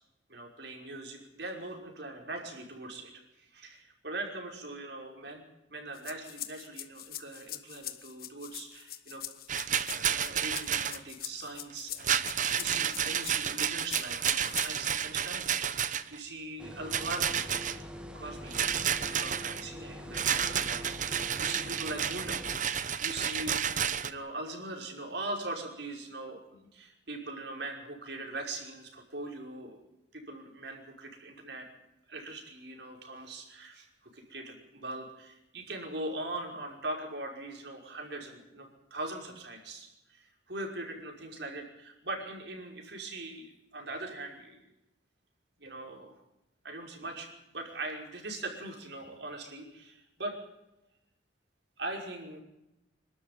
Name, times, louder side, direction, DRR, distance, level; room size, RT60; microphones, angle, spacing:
voice 1, 0.3-3.1 3.4-5.4 5.7-9.2 9.9-15.5 16.1-17.7 18.1-29.8 30.1-31.7 32.1-44.7 45.6-46.2 46.6-50.3 51.8-52.4, right 2 dB, 65° right, 2 dB, 5.7 m, -41 dB
sound 1, 5.9-15.0, left 12 dB, 55° left, 1.3 m, -43 dB
Rattle, 9.5-11.0 12.0-16.2 16.9-17.8 18.5-19.6 20.1-24.1, right 8 dB, 45° right, 1.0 m, -31 dB
sound 2, 16.6-22.6, equal, 5° right, 2.0 m, -44 dB
27.0 x 13.0 x 9.6 m, 0.92 s
head